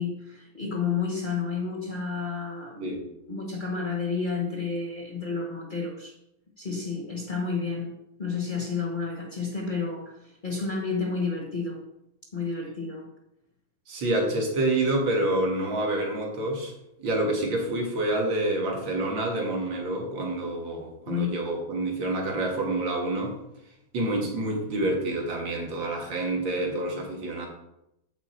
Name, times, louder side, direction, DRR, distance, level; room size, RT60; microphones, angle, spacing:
voice 1, 0.0-3.0 3.3-6.1 6.6-10.1 10.4-11.8 12.3-13.1 21.0-21.3, left 5 dB, 30° left, -2 dB, 1.4 m, -31 dB
voice 2, 13.9-16.7 17.0-23.3 23.9-27.5, right 2 dB, 80° right, 0 dB, 2.4 m, -27 dB
7.9 x 5.9 x 4.4 m, 0.84 s
omnidirectional pair, 2.1 m